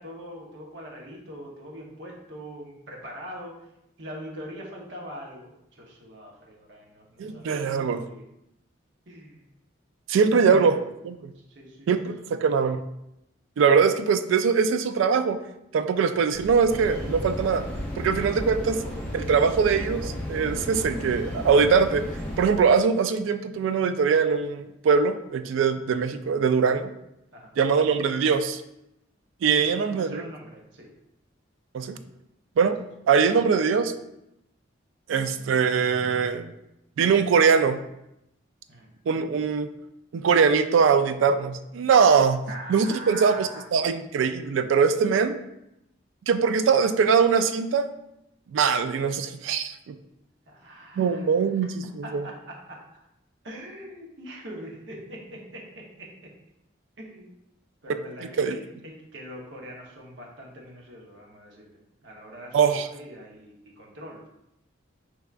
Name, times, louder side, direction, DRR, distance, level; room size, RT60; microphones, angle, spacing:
voice 1, 0.0-3.6 4.0-8.2 9.1-9.5 10.3-10.7 11.5-12.1 18.7-19.1 27.3-27.5 29.6-30.9 38.7-38.9 42.5-43.6 50.5-51.2 52.0-52.8 53.4-56.3 57.0-57.4 57.8-61.7 62.0-64.3, equal, 65° right, -1 dB, 0.9 m, -42 dB
voice 2, 7.2-8.0 10.1-10.8 11.0-11.3 11.9-12.8 13.6-15.4 15.7-17.6 18.0-18.8 19.1-22.0 22.4-26.9 27.6-28.6 29.4-30.2 31.7-32.0 32.6-32.8 33.1-33.9 35.1-36.5 37.0-37.8 39.1-39.7 40.1-42.4 42.7-45.3 46.3-47.9 48.5-49.9 51.0-52.3 58.4-58.6 62.5-62.9, right 6 dB, 80° right, 10 dB, 0.3 m, -22 dB
sound 1, 16.3-22.6, equal, 45° right, 1.4 m, -40 dB
sound 2, 16.7-22.4, equal, 10° left, 0.5 m, -34 dB
4.7 x 3.3 x 2.4 m, 0.85 s
head